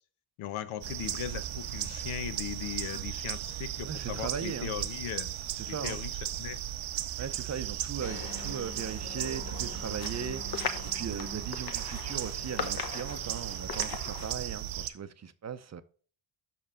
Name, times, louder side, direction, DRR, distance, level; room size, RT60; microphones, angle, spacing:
voice 1, 0.4-5.3 5.7-6.1 6.4-6.6, left 10 dB, 85° left, 0.9 m, -38 dB
sound 1, 0.8-14.9, right 12 dB, 70° right, 0.7 m, -36 dB
voice 2, 3.8-4.8 5.6-6.0 7.2-15.8, right 7 dB, 35° right, 0.6 m, -38 dB
sound 2, 8.0-14.3, left 7 dB, 50° left, 1.0 m, -40 dB
6.0 x 5.6 x 4.9 m
cardioid pair, 100°, 49 cm